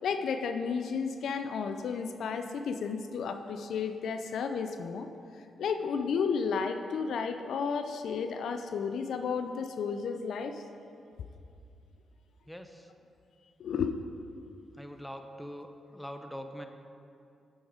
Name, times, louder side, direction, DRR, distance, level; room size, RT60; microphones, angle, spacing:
voice 1, 0.0-5.1 5.6-10.6 13.6-13.9, left 6 dB, 75° left, 7 dB, 0.3 m, -32 dB
voice 2, 12.5-12.9 14.7-15.7 15.9-16.7, equal, 5° left, 6 dB, 0.6 m, -43 dB
8.2 x 3.9 x 4.9 m, 2.6 s
supercardioid pair, 60°, 0 cm